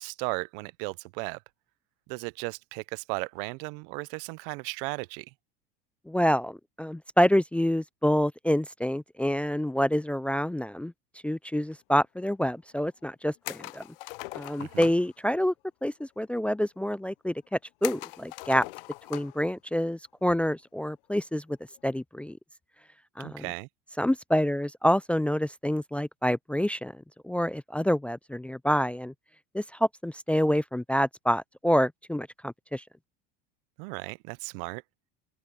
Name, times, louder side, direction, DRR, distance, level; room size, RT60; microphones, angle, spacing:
voice 1, 0.0-1.4 2.1-5.3 14.6-14.9 23.2-23.7 33.8-34.8, right 29 dB, 65° right, 0.9 m, -36 dB
voice 2, 6.1-10.9 11.2-13.8 14.3-15.5 15.8-18.6 19.1-21.4 21.8-22.4 23.2-23.5 24.0-26.9 27.2-29.1 29.5-29.6 30.0-32.8, equal, 5° left, 0.6 m, -27 dB
sound 1, 13.4-15.1 17.8-19.4 19.8-19.9 21.5-21.8, left 23 dB, 70° left, 0.8 m, -40 dB
open air
hypercardioid pair, 85°, 29 cm